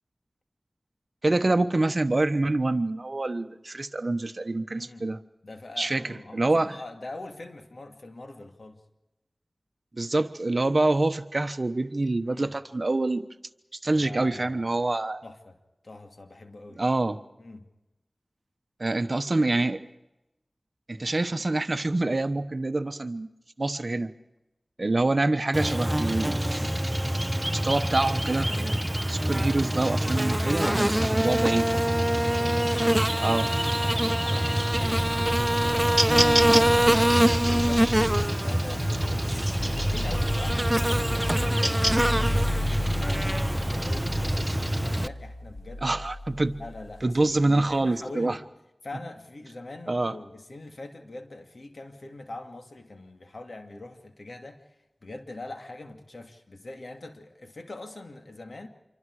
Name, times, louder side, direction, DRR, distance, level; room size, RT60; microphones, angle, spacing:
voice 1, 1.2-5.2 5.8-6.0 6.3-6.8 9.9-13.2 13.8-15.2 16.8-17.2 18.8-19.8 20.9-23.3 23.6-24.1 24.8-26.7 27.5-31.7 33.2-33.5 45.8-46.6 47.0-48.4 49.9-50.1, right 2 dB, 50° right, 10 dB, 1.1 m, -26 dB
voice 2, 4.7-5.1 5.4-8.8 12.1-12.5 13.9-14.9 15.2-15.6 15.8-16.8 17.4-17.7 24.8-25.0 30.2-33.4 33.7-35.1 35.6-41.8 42.3-45.9 46.6-48.4 48.8-54.8 55.0-58.7, left 2 dB, 70° left, 4 dB, 2.6 m, -43 dB
Buzz, 25.5-45.1, right 1 dB, 15° right, 0.7 m, -24 dB
sound 1, 34.7-47.7, left 1 dB, 35° left, 3.8 m, -35 dB
27.0 x 24.0 x 4.9 m, 0.96 s
wide cardioid pair, 55°, 0 cm